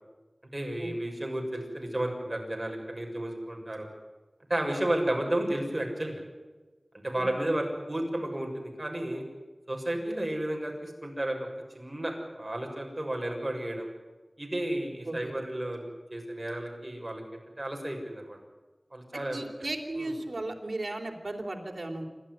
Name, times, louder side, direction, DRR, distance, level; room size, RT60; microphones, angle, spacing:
voice 1, 0.5-3.9 4.5-6.2 7.0-9.2 9.7-11.5 11.7-13.9 14.4-18.4 18.9-19.4 20.0-20.1, right 1 dB, 30° right, 2 dB, 6.8 m, -32 dB
voice 2, 7.1-7.6 15.0-15.3 19.1-22.0, right 2 dB, 65° right, 3 dB, 3.7 m, -36 dB
28.0 x 13.0 x 9.7 m, 1.3 s
wide cardioid pair, 50°, 0 cm